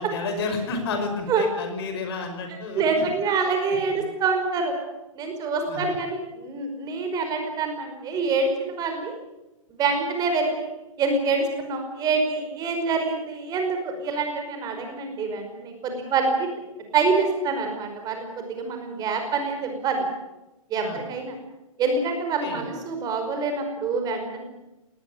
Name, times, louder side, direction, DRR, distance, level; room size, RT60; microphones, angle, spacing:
voice 1, 0.0-3.1 3.9-4.0 5.7-5.9 20.8-21.0 22.4-22.6, left 3 dB, 45° left, 6 dB, 5.8 m, -31 dB
voice 2, 2.7-4.7 5.2-9.1 9.7-10.7 11.0-16.5 16.9-20.1 20.7-21.4 21.8-24.4, right 4 dB, 20° right, 5 dB, 5.2 m, -26 dB
19.5 x 19.5 x 10.0 m, 0.98 s
figure-of-eight pair, 115°, 18 cm